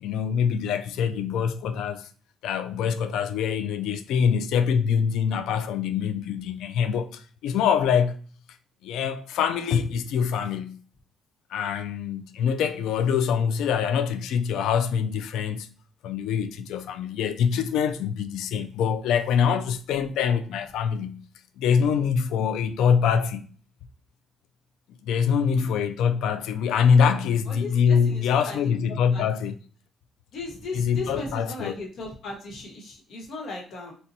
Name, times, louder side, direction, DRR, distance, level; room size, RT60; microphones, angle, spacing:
voice 1, 0.0-2.1 2.4-8.2 8.8-10.8 11.5-15.7 16.0-21.2 21.6-23.4 25.0-29.5 30.8-31.7, left 7 dB, 90° left, 0.3 m, -24 dB
voice 2, 25.5-25.8 27.5-28.6 29.1-29.2 30.3-33.9, left 2 dB, 55° left, 1.0 m, -37 dB
4.0 x 2.2 x 2.7 m
cardioid pair, 175°, 0 cm